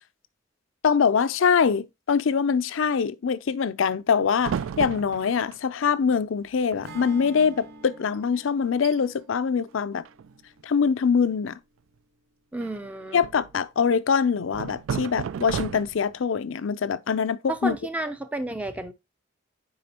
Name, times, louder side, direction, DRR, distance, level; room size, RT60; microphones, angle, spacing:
voice 1, 0.8-10.0 10.6-11.5 13.1-17.8, left 6 dB, 75° left, 0.5 m, -24 dB
sound 1, 4.4-5.6 6.4-6.5 6.7-7.1 7.4-7.6 8.1-8.2 8.7-9.0 10.1-10.6 12.6-13.6 14.5-16.2, right 7 dB, 80° right, 0.3 m, -33 dB
Acoustic guitar / Strum, 6.8-11.1, right 2 dB, 55° right, 0.9 m, -47 dB
voice 2, 12.5-13.2 17.5-18.9, right 1 dB, 5° right, 0.5 m, -31 dB
8.5 x 4.8 x 2.9 m
head